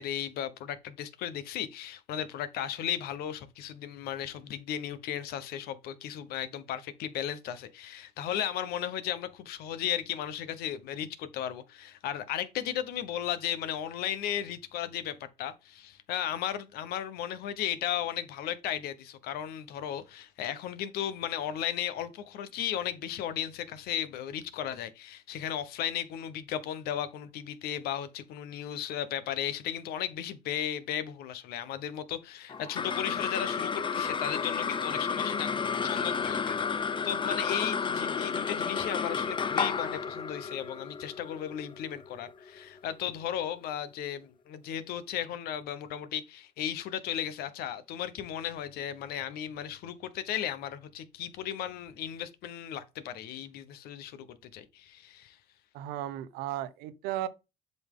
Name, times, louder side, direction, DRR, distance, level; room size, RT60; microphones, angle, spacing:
voice 1, 0.0-55.4, left 10 dB, 80° left, 1.0 m, -35 dB
sound 1, 32.5-43.1, left 6 dB, 30° left, 0.7 m, -32 dB
voice 2, 55.7-57.3, right 12 dB, 90° right, 0.8 m, -35 dB
7.9 x 5.4 x 3.7 m
supercardioid pair, 85°, 16 cm